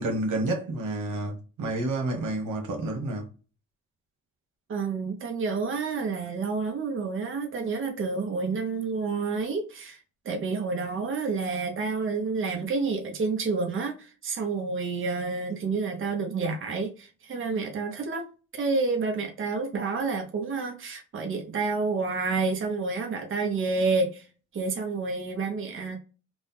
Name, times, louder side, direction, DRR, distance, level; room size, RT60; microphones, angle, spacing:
voice 1, 0.0-3.3, right 2 dB, 90° right, 1.4 m, -29 dB
voice 2, 4.7-10.0 10.2-18.2 18.5-24.2 24.5-26.0, right 4 dB, 40° right, 1.1 m, -29 dB
3.8 x 2.5 x 3.6 m
cardioid pair, 90°, 30 cm